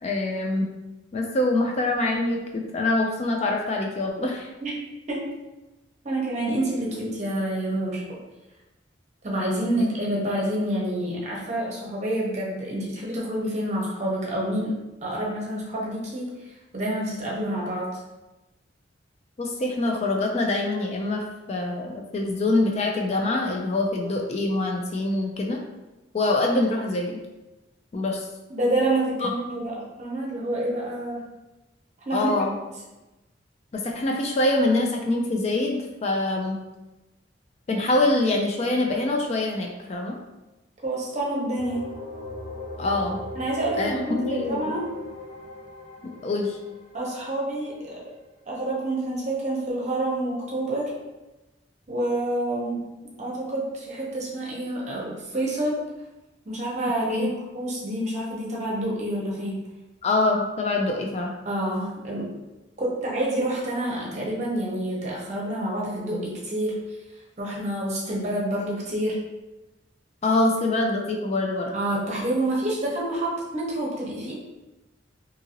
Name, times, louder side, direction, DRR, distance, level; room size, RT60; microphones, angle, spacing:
voice 1, 0.0-0.7 1.1-4.5 9.8-9.9 19.4-25.6 26.1-27.2 27.9-28.3 29.2-29.3 32.1-32.5 33.7-36.6 37.7-40.2 42.8-43.2 43.8-44.7 46.0-46.6 57.1-57.3 60.0-61.3 70.2-71.8, left 2 dB, 35° left, 1 dB, 0.3 m, -25 dB
voice 2, 6.0-8.2 9.2-18.0 28.5-31.3 32.0-32.3 40.8-41.9 43.4-44.9 46.9-48.0 48.5-51.0 51.9-52.9 53.2-55.8 56.5-59.6 61.4-62.3 62.8-66.8 67.4-69.2 71.7-74.3, right 1 dB, 40° right, -4 dB, 0.8 m, -28 dB
sound 1, 41.6-47.3, left 2 dB, 70° left, 1.4 m, -38 dB
2.7 x 2.6 x 2.8 m, 1.0 s
head